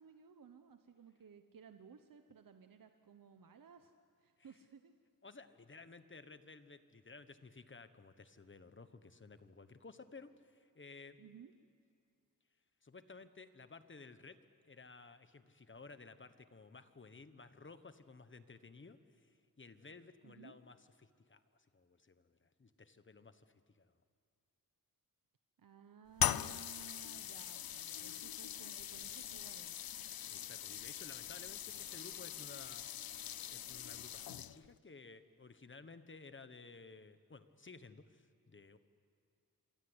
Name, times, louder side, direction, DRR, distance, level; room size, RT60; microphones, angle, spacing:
voice 1, 0.0-3.9 4.2-4.9 11.2-11.5 20.2-20.6 25.6-29.8, right 7 dB, 65° right, 7 dB, 1.1 m, -58 dB
voice 2, 5.2-11.2 12.8-14.4 14.6-23.9 30.1-32.8 33.5-38.8, left 4 dB, 35° left, 11 dB, 1.2 m, -56 dB
sound 1, 26.2-34.8, left 11 dB, 75° left, 0.6 m, -41 dB
27.0 x 25.0 x 8.1 m, 2.4 s
wide cardioid pair, 120°, 36 cm